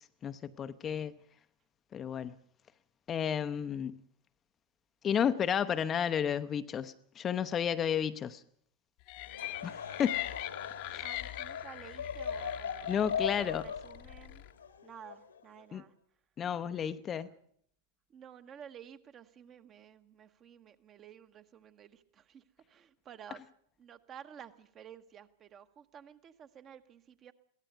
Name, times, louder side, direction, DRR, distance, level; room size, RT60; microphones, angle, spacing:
voice 1, 0.2-1.2 1.9-2.3 3.1-4.0 5.0-8.4 9.6-10.2 10.9-11.0 12.9-13.7 15.7-15.8 16.4-17.3, left 8 dB, 25° left, 0.8 m, -32 dB
sound 1, 9.1-14.5, left 18 dB, 45° left, 1.1 m, -42 dB
Laughter / Crowd, 9.2-15.6, left 7 dB, 70° left, 1.7 m, -39 dB
voice 2, 11.0-14.4 14.8-15.9 18.1-23.4 23.8-27.3, right 8 dB, 30° right, 1.3 m, -52 dB
23.0 x 17.0 x 6.8 m
figure-of-eight pair, 90°, 0 cm